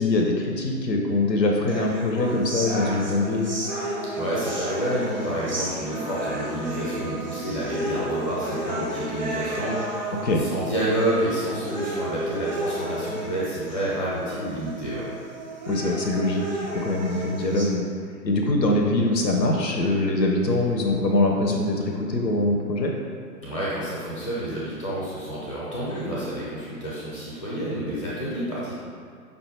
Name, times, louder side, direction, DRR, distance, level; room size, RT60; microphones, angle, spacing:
voice 1, 0.0-3.5 10.2-10.4 15.7-17.9 18.2-22.9, left 2 dB, 80° left, 1 dB, 0.7 m, -23 dB
sound 1, 1.7-17.7, right 1 dB, 30° right, 0.4 m, -32 dB
voice 2, 4.2-15.1 23.4-28.7, right 1 dB, 20° left, -8 dB, 0.6 m, -29 dB
5.3 x 2.2 x 4.1 m, 2.2 s
figure-of-eight pair, 130°, 50 cm